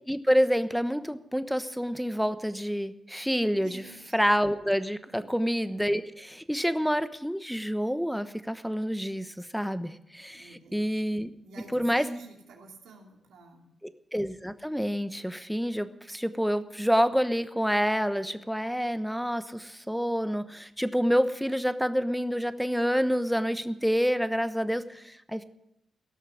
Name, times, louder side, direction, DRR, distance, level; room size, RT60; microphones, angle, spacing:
voice 1, 0.1-3.8 4.1-11.3 11.7-12.0 14.1-25.4, equal, ahead, 11 dB, 1.1 m, -28 dB
voice 2, 3.6-4.2 5.1-5.3 10.3-13.7, right 2 dB, 85° right, 1 dB, 2.8 m, -47 dB
17.0 x 6.5 x 9.9 m, 0.80 s
supercardioid pair, 55°, 0 cm